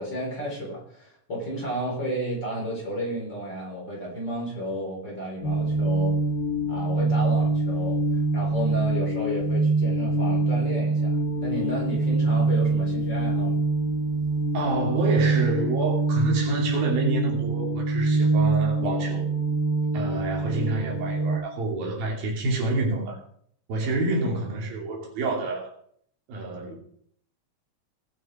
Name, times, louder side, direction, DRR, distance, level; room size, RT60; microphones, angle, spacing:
voice 1, 0.0-6.2 6.7-8.0 8.3-13.6, equal, 30° left, -3 dB, 4.6 m, -32 dB
sound 1, 5.4-21.4, right 3 dB, 45° left, 1.0 m, -24 dB
voice 2, 14.5-19.2 19.9-23.2 23.7-25.7 26.3-26.8, right 2 dB, 85° right, -1 dB, 4.6 m, -28 dB
19.5 x 6.6 x 4.9 m, 0.64 s
omnidirectional pair, 4.1 m